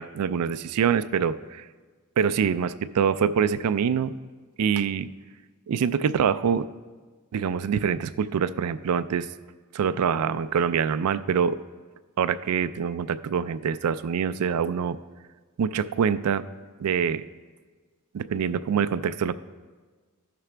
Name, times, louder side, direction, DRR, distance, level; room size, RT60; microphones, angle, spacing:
voice 1, 0.0-1.6 2.2-4.1 4.6-5.1 5.7-6.7 7.3-9.3 9.7-11.6 12.2-15.0 15.6-16.4 16.8-17.2 18.1-19.3, right 7 dB, 80° right, 14 dB, 0.3 m, -25 dB
14.5 x 5.9 x 3.3 m, 1.4 s
head